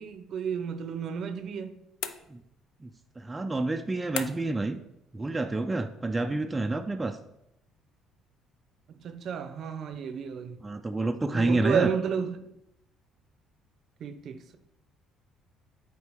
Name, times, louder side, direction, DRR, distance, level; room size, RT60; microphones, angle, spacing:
voice 1, 0.0-1.7 8.9-10.6 11.3-12.5 14.0-14.6, right 7 dB, 55° right, 0.6 m, -32 dB
sound 1, 2.0-2.7 4.2-4.7, left 10 dB, 90° left, 0.4 m, -37 dB
voice 2, 3.2-4.8 5.1-7.2 10.6-11.9, right 2 dB, 15° right, 0.4 m, -28 dB
8.1 x 4.5 x 3.5 m
cardioid pair, 105°, 0 cm